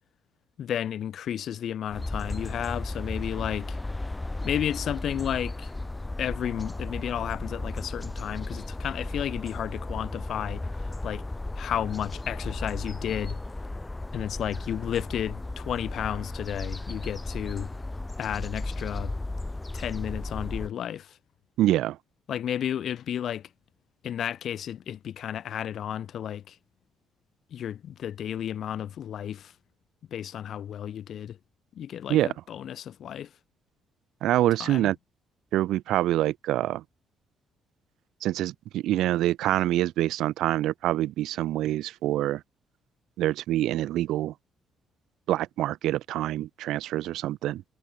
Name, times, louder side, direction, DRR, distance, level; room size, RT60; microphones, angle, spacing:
voice 1, 0.6-3.8 4.4-5.7 6.2-11.2 11.6-13.4 14.1-17.7 18.2-19.1 19.7-21.2 22.3-23.5 24.0-26.6 27.5-29.6 30.1-31.4 31.8-33.3 34.6-34.9, left 10 dB, 50° left, 1.8 m, -32 dB
sound 1, 1.9-20.7, left 2 dB, 10° left, 6.5 m, -35 dB
voice 2, 21.6-22.0 32.1-32.3 34.2-34.9 35.5-36.8 38.2-42.4 43.2-44.3 45.3-47.6, right 14 dB, 80° right, 3.2 m, -26 dB
cardioid pair, 160°, 0 cm